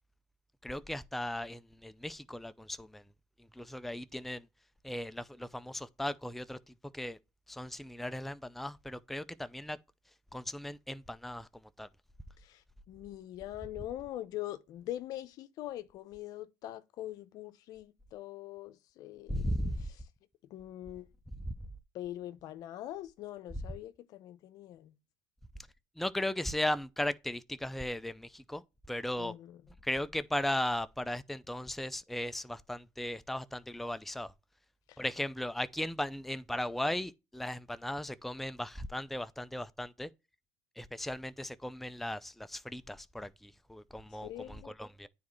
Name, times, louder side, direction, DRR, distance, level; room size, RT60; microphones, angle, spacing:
voice 1, 0.6-3.0 3.5-4.5 4.8-6.6 6.9-7.2 7.5-9.8 10.3-11.5 11.8-11.9 19.3-19.8 26.0-28.6 28.9-29.3 29.8-34.3 35.0-40.1 40.8-45.1, left 1 dB, 5° left, 0.5 m, -37 dB
voice 2, 12.4-19.5 19.8-20.0 20.5-21.1 21.9-25.0 29.2-29.7 34.9-35.0 44.1-44.7, left 13 dB, 60° left, 0.7 m, -43 dB
9.4 x 4.2 x 3.1 m
supercardioid pair, 85°, 7 cm